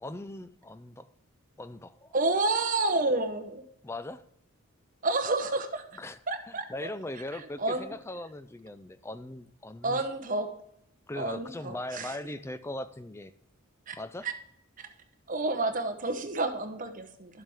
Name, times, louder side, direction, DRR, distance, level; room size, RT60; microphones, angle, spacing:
voice 1, 0.0-1.1 1.6-2.1 3.8-4.2 6.0-6.2 6.5-10.1 11.1-13.3 14.0-14.3, left 1 dB, 10° left, 13 dB, 0.3 m, -39 dB
voice 2, 2.1-3.6 5.0-5.8 6.3-6.9 7.3-7.9 9.8-10.5 11.2-12.2 13.9-14.0 14.2-14.3 14.8-14.9 15.3-17.4, right 2 dB, 40° right, 7 dB, 0.8 m, -30 dB
12.0 x 7.3 x 3.5 m, 0.78 s
head